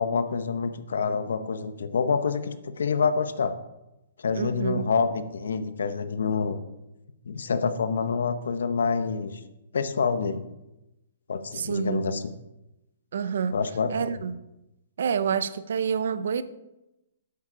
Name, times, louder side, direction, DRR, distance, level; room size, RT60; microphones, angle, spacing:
voice 1, 0.0-3.6 4.2-6.6 7.3-9.4 9.7-10.5 11.3-12.2 13.5-14.1, left 5 dB, 85° left, 11 dB, 0.9 m, -27 dB
voice 2, 4.4-4.9 11.5-12.0 13.1-13.5 13.9-14.4 15.0-16.4, right 7 dB, 60° right, 14 dB, 0.6 m, -28 dB
8.4 x 7.4 x 5.0 m, 0.94 s
hypercardioid pair, 175°, 0 cm